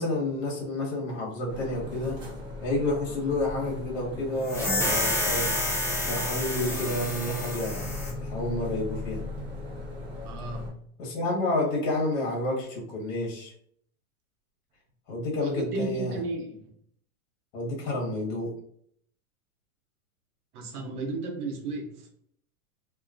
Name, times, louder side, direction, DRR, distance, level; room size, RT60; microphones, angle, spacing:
voice 1, 0.0-2.2 2.6-5.5 6.1-9.2 11.0-13.5 15.1-16.2 17.5-18.5, left 2 dB, 60° left, -2 dB, 1.3 m, -30 dB
sound 1, 1.5-10.7, left 2 dB, 25° right, 1.0 m, -37 dB
sound 2, 4.4-8.1, left 1 dB, 5° left, 0.4 m, -29 dB
voice 2, 10.2-10.8 15.4-16.7 20.5-22.1, right 3 dB, 85° right, 2 dB, 0.9 m, -34 dB
2.7 x 2.3 x 2.4 m, 0.65 s
supercardioid pair, 135°, 44 cm